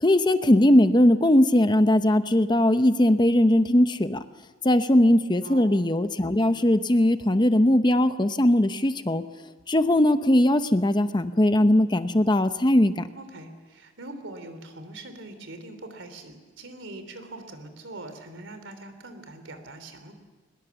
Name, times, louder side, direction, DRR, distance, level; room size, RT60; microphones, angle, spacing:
voice 1, 0.0-4.2 4.6-9.2 9.7-13.0, left 1 dB, 25° left, 10 dB, 0.8 m, -20 dB
voice 2, 5.4-5.8 13.1-20.1, right 2 dB, 90° right, 8 dB, 3.2 m, -42 dB
22.0 x 21.0 x 7.1 m, 1.3 s
head